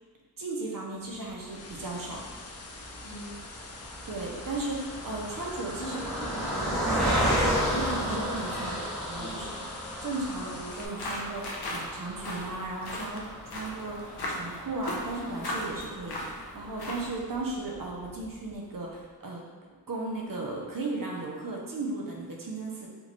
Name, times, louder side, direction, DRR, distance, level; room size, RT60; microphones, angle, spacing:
voice 1, 0.4-2.2 4.1-6.0 6.3-6.5 7.7-8.7 9.1-9.6 10.0-19.4 19.9-22.9, right 2 dB, 55° right, -1 dB, 0.8 m, -36 dB
sound 1, 1.1-10.9, left 4 dB, 40° left, 0.4 m, -46 dB
Car passing by, 1.7-17.2 17.7-17.8 18.1-18.3, equal, ahead, 1.1 m, -34 dB
voice 2, 3.0-3.5 5.7-7.5 8.5-10.0 10.4-10.6, right 1 dB, 85° left, -7 dB, 1.2 m, -43 dB
sound 2, 10.7-17.2, left 1 dB, 70° left, 0.7 m, -38 dB
3.5 x 2.4 x 3.2 m, 1.4 s
cardioid pair, 50°, 39 cm